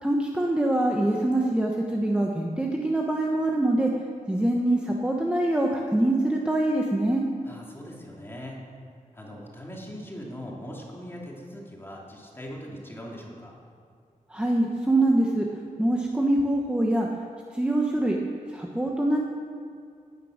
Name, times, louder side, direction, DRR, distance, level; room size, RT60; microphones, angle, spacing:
voice 1, 0.0-3.9 4.3-7.2 14.3-15.5 15.8-17.1 17.5-18.2 18.5-19.2, right 1 dB, 10° right, 0 dB, 1.0 m, -24 dB
voice 2, 7.5-8.6 9.1-13.5, equal, 15° left, -2 dB, 2.7 m, -40 dB
17.0 x 9.8 x 6.5 m, 2.3 s
wide cardioid pair, 155°, 14 cm